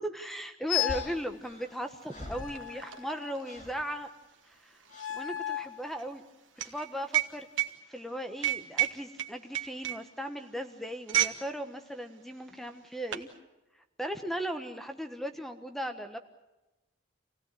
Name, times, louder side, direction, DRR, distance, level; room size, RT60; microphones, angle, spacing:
voice 1, 0.0-4.1 4.5-4.8 5.1-6.2 6.6-7.5 7.9-13.3 14.0-16.2, equal, ahead, 7 dB, 1.2 m, -37 dB
sound 1, 0.7-1.2 2.3-3.6 4.9-5.8, left 13 dB, 90° left, 0.7 m, -34 dB
sound 2, 0.9-3.2 3.4-3.9 4.9-5.2 6.6-6.8, left 1 dB, 40° left, 2.6 m, -45 dB
sound 3, 1.1-1.2 1.5-11.5 11.8-12.0 12.7-13.3, right 14 dB, 80° right, 1.4 m, -33 dB
27.0 x 17.0 x 8.6 m, 1.0 s
head